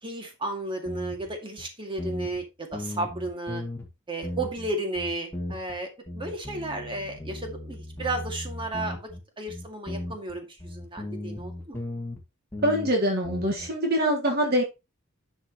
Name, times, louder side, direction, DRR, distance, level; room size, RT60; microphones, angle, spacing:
voice 1, 0.0-3.6 4.1-5.9 6.1-9.1 9.4-11.8, right 2 dB, 25° right, 3 dB, 2.1 m, -33 dB
sound 1, 0.8-1.3 1.6-1.7 2.0-2.4 2.7-3.9 4.2-4.7 4.9-5.8 6.1-9.2 9.5-12.2 12.5-12.9 13.2-13.7, left 1 dB, 10° left, 1.9 m, -36 dB
voice 2, 12.6-14.6, equal, 50° right, 1 dB, 1.6 m, -24 dB
10.5 x 6.4 x 3.0 m, 0.25 s
head